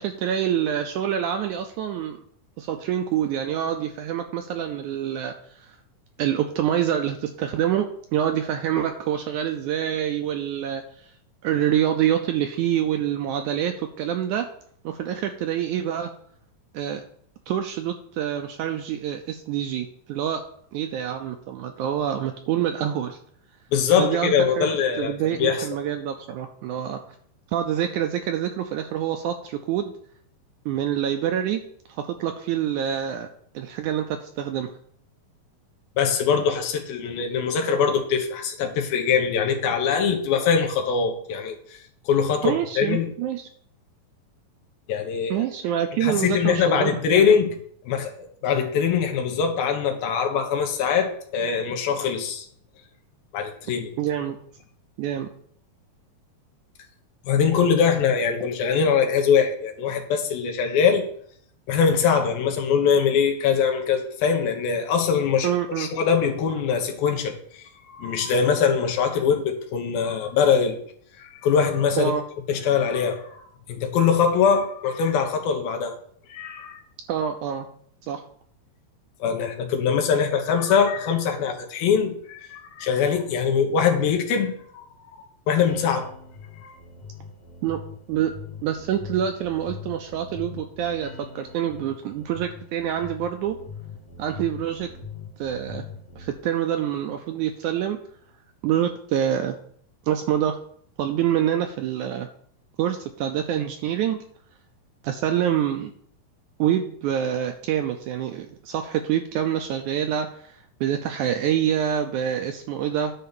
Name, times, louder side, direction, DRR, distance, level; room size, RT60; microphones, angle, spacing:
voice 1, 0.0-2.2 2.6-5.8 6.2-11.1 11.4-14.5 14.8-16.1 16.7-17.0 17.5-20.4 20.7-23.2 24.0-24.7 25.0-27.0 27.5-29.9 30.7-31.6 31.9-33.3 33.5-34.7 42.4-43.5 45.3-47.3 54.0-54.4 55.0-55.3 65.4-65.9 72.0-72.2 77.1-77.7 78.1-78.2 87.6-87.8 88.1-88.3 88.6-93.6 94.2-94.9 95.4-95.9 96.2-98.0 98.6-99.6 100.1-100.6 101.0-102.3 102.8-104.2 105.0-105.9 106.6-113.1, right 10 dB, 80° right, 6 dB, 1.8 m, -26 dB
voice 2, 23.7-25.6 36.0-41.8 42.1-43.1 44.9-45.4 46.0-47.6 47.9-52.5 53.3-53.9 57.2-61.1 61.7-65.5 65.8-70.8 71.2-72.1 72.5-73.4 73.7-76.0 76.3-76.8 79.2-84.8 85.1-86.1 86.6-86.8, left 6 dB, 90° left, 4 dB, 3.1 m, -22 dB
sound 1, 85.7-96.4, left 5 dB, 60° left, 2.3 m, -41 dB
10.0 x 4.1 x 6.8 m, 0.62 s
omnidirectional pair, 4.1 m